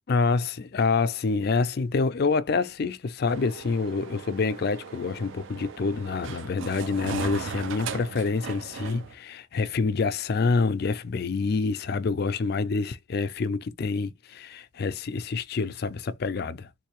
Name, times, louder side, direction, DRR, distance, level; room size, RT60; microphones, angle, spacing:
voice 1, 0.1-16.7, left 4 dB, 50° left, 0.4 m, -27 dB
sound 1, 3.3-9.1, right 5 dB, 65° right, 0.5 m, -38 dB
3.7 x 2.6 x 3.0 m
head